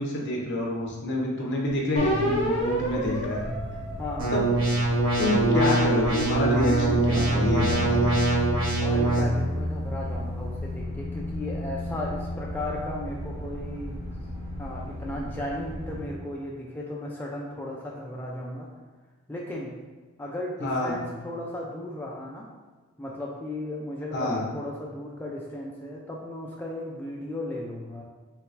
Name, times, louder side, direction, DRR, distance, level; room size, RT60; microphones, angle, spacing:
voice 1, 0.0-3.4 4.3-4.4 5.2-8.1 20.6-21.0 24.1-24.4, left 1 dB, 55° left, -2 dB, 0.9 m, -28 dB
sound 1, 1.9-16.0, left 1 dB, 15° right, 1.0 m, -33 dB
sound 2, 2.0-4.6 5.2-7.7, equal, 25° left, 0.9 m, -30 dB
voice 2, 4.0-4.3 8.8-14.0 14.6-18.7 19.3-19.8 20.2-22.5 23.0-28.0, left 1 dB, 10° left, -3 dB, 0.4 m, -35 dB
sound 3, 4.2-9.2, right 2 dB, 60° right, 1.2 m, -24 dB
4.7 x 3.3 x 2.5 m, 1.3 s
head